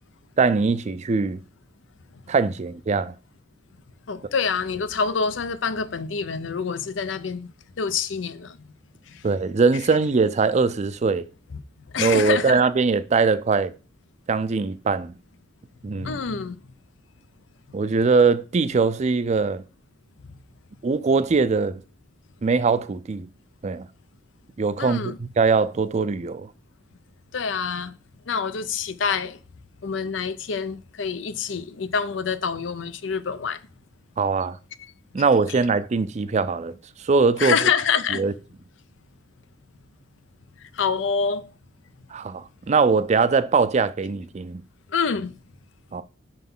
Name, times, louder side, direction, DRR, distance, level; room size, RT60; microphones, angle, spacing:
voice 1, 0.4-1.4 2.3-3.1 9.2-11.3 12.0-13.7 14.3-15.1 15.8-16.1 17.7-19.6 20.8-21.8 22.4-23.3 23.6-23.9 24.6-26.5 34.2-34.6 35.1-36.8 37.0-37.5 38.2-38.3 42.1-44.6 45.9-46.0, right 4 dB, 40° right, 0.4 m, -21 dB
voice 2, 4.1-7.5 7.8-8.6 9.1-9.2 11.5-11.6 11.9-12.6 16.0-16.6 24.8-25.2 27.3-27.9 28.3-29.4 29.8-33.6 35.5-35.6 37.4-38.2 40.7-41.5 44.9-45.3, left 6 dB, 90° left, 0.6 m, -26 dB
5.6 x 4.0 x 5.4 m
head